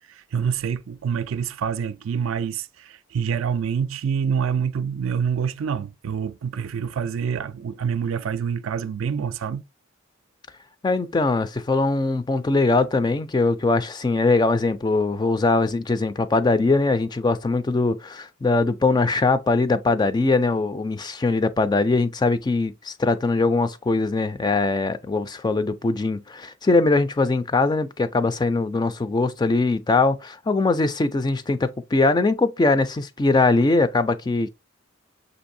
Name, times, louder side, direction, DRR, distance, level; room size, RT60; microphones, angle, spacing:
voice 1, 0.1-9.6, right 7 dB, 75° right, 0.4 m, -26 dB
voice 2, 10.8-34.5, left 3 dB, 20° left, 0.3 m, -21 dB
6.7 x 2.6 x 2.6 m
head